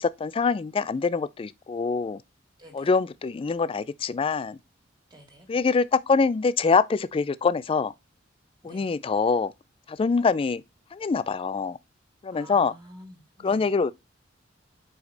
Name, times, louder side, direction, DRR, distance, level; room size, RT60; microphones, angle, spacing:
voice 1, 0.0-2.2 2.7-4.6 5.5-7.9 8.6-9.5 9.9-10.6 10.9-11.8 12.2-12.7 13.4-13.9, left 4 dB, 30° left, 0.3 m, -24 dB
voice 2, 2.6-2.9 5.1-5.5 8.6-8.9 12.3-13.7, equal, 25° right, 2.0 m, -49 dB
5.0 x 4.9 x 3.9 m
head